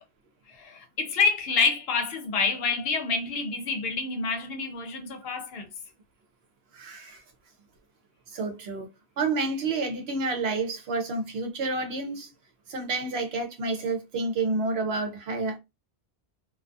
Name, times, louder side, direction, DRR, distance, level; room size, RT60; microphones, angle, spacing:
voice 1, 0.5-5.7, left 4 dB, 65° left, 0.7 m, -27 dB
voice 2, 6.7-7.2 8.3-8.9 9.2-12.3 12.7-15.6, right 3 dB, 70° right, 0.9 m, -29 dB
2.3 x 2.2 x 2.5 m
omnidirectional pair, 1.1 m